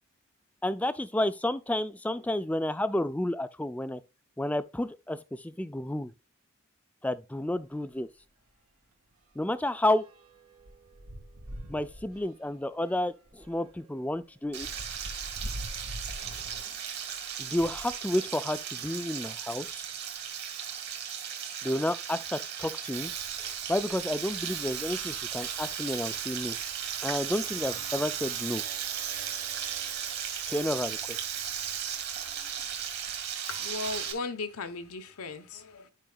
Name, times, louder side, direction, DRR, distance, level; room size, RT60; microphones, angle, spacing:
voice 1, 0.6-4.0 4.4-6.1 7.0-8.1 9.4-10.0 11.7-14.7 17.4-19.9 21.6-23.1 23.4-26.6 27.0-28.6 30.5-31.2, left 1 dB, 5° left, 0.3 m, -31 dB
sound 1, 7.5-7.7 8.0-8.2 8.5-18.0 18.7-20.0 20.7-20.8 21.0-21.1 22.8-22.9 23.6-23.9 24.2-25.5, equal, 90° right, 1.8 m, -46 dB
Frying (food), 14.5-34.1, right 8 dB, 45° right, 1.7 m, -37 dB
Domestic sounds home sounds, 22.9-33.3, right 9 dB, 65° right, 1.3 m, -41 dB
voice 2, 33.5-35.9, left 3 dB, 80° left, 0.9 m, -37 dB
12.0 x 4.8 x 2.3 m
head